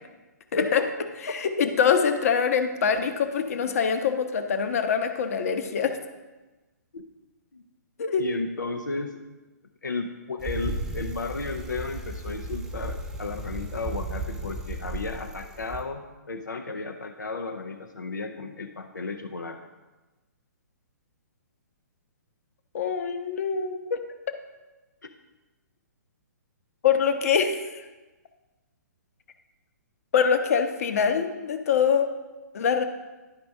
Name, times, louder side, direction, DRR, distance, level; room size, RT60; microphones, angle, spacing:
voice 1, 0.6-1.4 6.9-7.0 7.5-7.6 8.2-9.3 9.8-19.6 25.0-25.1, left 3 dB, 80° left, 5 dB, 0.7 m, -34 dB
voice 2, 1.3-6.0 8.0-8.2 22.7-24.0 26.8-27.8 30.1-32.1 32.5-32.8, left 7 dB, 55° left, 8 dB, 0.9 m, -24 dB
Bicycle, 10.4-15.8, right 2 dB, 5° right, 0.9 m, -34 dB
11.5 x 5.1 x 3.5 m, 1.2 s
figure-of-eight pair, 125°, 10 cm